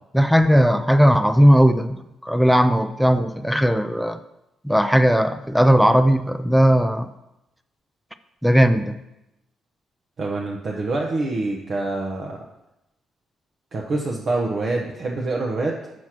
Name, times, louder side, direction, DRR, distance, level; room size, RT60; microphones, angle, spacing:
voice 1, 0.1-4.2 4.6-7.1 8.4-9.0, equal, ahead, 11 dB, 0.4 m, -17 dB
voice 2, 10.2-12.4 13.7-15.9, right 2 dB, 50° right, -1 dB, 0.8 m, -26 dB
6.2 x 4.4 x 6.0 m, 0.92 s
cardioid pair, 90°, 0 cm